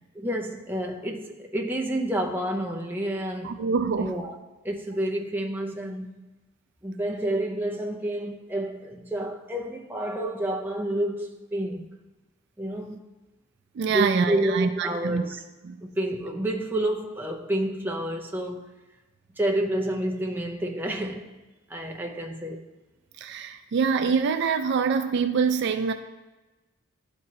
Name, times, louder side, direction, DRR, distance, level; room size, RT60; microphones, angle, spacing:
voice 1, 0.1-3.6 4.0-4.3 4.6-6.2 6.8-11.9 12.6-13.0 13.9-15.4 15.8-18.7 19.4-21.3 21.7-22.7, right 1 dB, 10° right, 0.6 m, -29 dB
voice 2, 3.4-4.1 13.8-15.2 15.6-15.8 23.2-25.9, right 5 dB, 55° right, 0.3 m, -25 dB
11.5 x 4.5 x 2.8 m
head